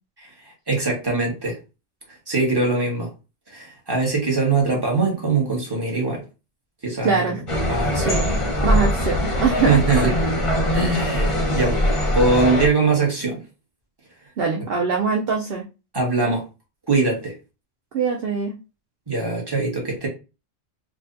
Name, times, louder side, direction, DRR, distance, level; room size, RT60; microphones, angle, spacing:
voice 1, 0.7-1.6 2.3-3.1 3.5-6.2 6.8-7.3 7.6-8.2 9.7-10.4 10.7-11.8 12.1-13.4 15.9-16.4 16.9-17.3 19.1-20.1, right 3 dB, 20° right, -2 dB, 1.3 m, -22 dB
voice 2, 7.0-7.4 8.0-10.2 14.4-15.6 17.9-18.6, right 5 dB, 60° right, 0 dB, 0.8 m, -23 dB
sound 1, 7.5-12.7, left 1 dB, 30° left, 0.7 m, -22 dB
4.6 x 2.4 x 2.6 m, 0.30 s
omnidirectional pair, 1.3 m